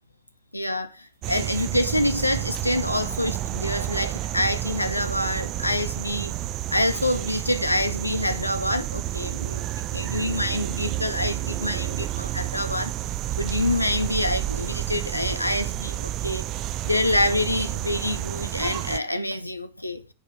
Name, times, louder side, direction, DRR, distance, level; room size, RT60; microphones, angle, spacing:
voice 1, 0.5-6.4 6.7-9.7 9.9-12.9 13.4-16.4 16.8-20.1, left 1 dB, 85° left, 1.3 m, -26 dB
sound 1, 1.0-1.1 1.5-2.6 3.0-3.1 3.4-3.5 4.0-4.2 4.5-4.9 5.3-5.7 6.0-6.1 6.4-6.5 7.0-7.2 7.5-8.6 9.0-9.1 9.4-9.5 10.0-10.2 10.5-10.9 11.3-12.1 12.4-12.5 13.0-13.1 13.5-14.6 15.0-15.1 15.4-15.5 16.0-16.1 16.5-16.9 17.3-17.7 18.0-18.1, right 11 dB, 60° right, 6.0 m, -41 dB
sound 2, 1.2-19.0, right 13 dB, 35° right, 0.8 m, -30 dB
16.5 x 5.9 x 6.2 m
figure-of-eight pair, 90°, 0 cm